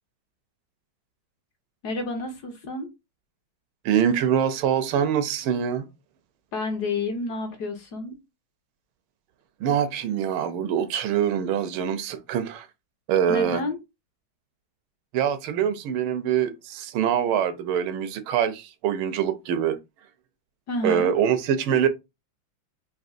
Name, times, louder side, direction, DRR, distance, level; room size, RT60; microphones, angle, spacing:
voice 1, 1.8-2.9 6.5-8.1 13.3-13.8 20.7-21.1, left 3 dB, 60° left, 1.3 m, -30 dB
voice 2, 3.8-5.8 9.6-12.7 13.1-13.6 15.1-19.8 20.8-21.9, right 9 dB, 90° right, 1.5 m, -24 dB
5.2 x 2.7 x 2.6 m
omnidirectional pair, 2.2 m